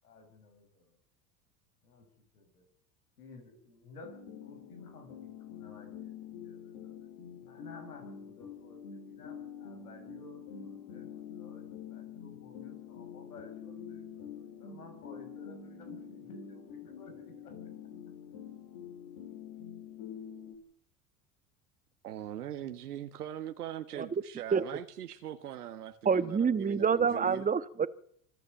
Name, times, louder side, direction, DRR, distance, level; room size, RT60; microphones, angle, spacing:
voice 1, 0.0-1.0 1.8-2.1 2.3-2.7 3.2-4.1 4.4-6.1 6.4-7.1 7.4-17.6, left 3 dB, 85° left, 6.9 m, -54 dB
sound 1, 4.0-20.6, left 7 dB, 55° left, 5.0 m, -46 dB
voice 2, 22.0-27.5, right 11 dB, 90° right, 1.4 m, -41 dB
voice 3, 26.0-27.9, right 6 dB, 20° right, 1.3 m, -27 dB
26.5 x 12.0 x 8.2 m
hypercardioid pair, 85°, 44 cm